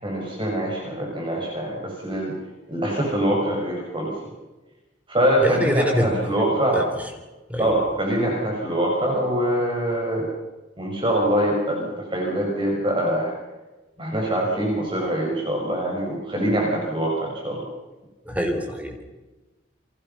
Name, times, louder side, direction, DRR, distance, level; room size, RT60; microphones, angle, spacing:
voice 1, 0.0-2.3 2.7-4.1 5.1-6.8 7.6-10.3 10.8-13.3 14.0-17.6, right 1 dB, 25° right, -2 dB, 6.0 m, -24 dB
voice 2, 5.4-6.4 6.7-7.0 7.5-7.8 18.3-19.1, equal, 10° right, 4 dB, 3.7 m, -26 dB
29.5 x 24.5 x 5.7 m, 1.1 s
head